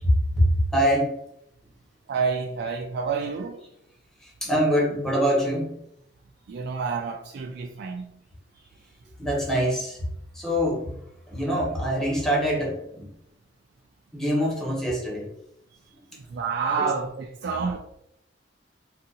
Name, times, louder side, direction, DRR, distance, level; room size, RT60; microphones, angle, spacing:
voice 1, 0.0-1.2 4.2-5.8 9.2-10.1 10.3-11.0 11.3-13.1 14.1-15.3 16.8-16.9, equal, 5° left, 0.9 m, -24 dB
voice 2, 2.1-3.6 6.5-8.1 8.6-8.7 16.3-17.8, right 5 dB, 60° right, 0.3 m, -28 dB
2.7 x 2.4 x 3.8 m
head